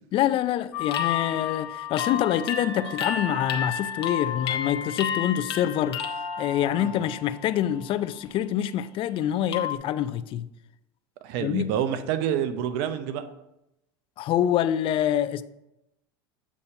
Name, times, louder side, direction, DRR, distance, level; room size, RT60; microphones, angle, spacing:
voice 1, 0.1-6.0 6.4-10.5 11.4-11.7 14.2-15.4, left 11 dB, 45° left, 0.4 m, -26 dB
sound 1, 0.7-7.6 8.0-8.4 9.5-9.8, left 8 dB, 85° left, 0.8 m, -31 dB
voice 2, 11.2-13.2, right 9 dB, 65° right, 0.6 m, -28 dB
8.3 x 2.8 x 5.4 m
hypercardioid pair, 90°, 13 cm